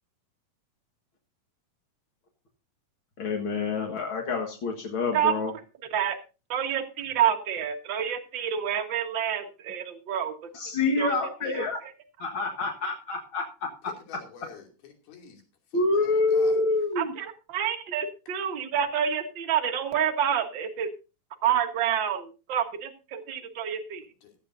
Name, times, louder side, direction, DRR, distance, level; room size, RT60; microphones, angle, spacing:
voice 1, 3.2-5.5 10.5-11.8 12.2-13.7 15.7-17.1, left 3 dB, 50° left, 1 dB, 1.5 m, -27 dB
voice 2, 6.5-10.3 11.0-11.7 16.9-20.9 21.4-24.0, right 9 dB, 70° right, 4 dB, 1.1 m, -28 dB
voice 3, 13.9-15.4 15.7-16.6 24.2-24.4, left 6 dB, 75° left, 2 dB, 4.6 m, -48 dB
16.0 x 13.0 x 2.7 m, 0.32 s
omnidirectional pair, 4.5 m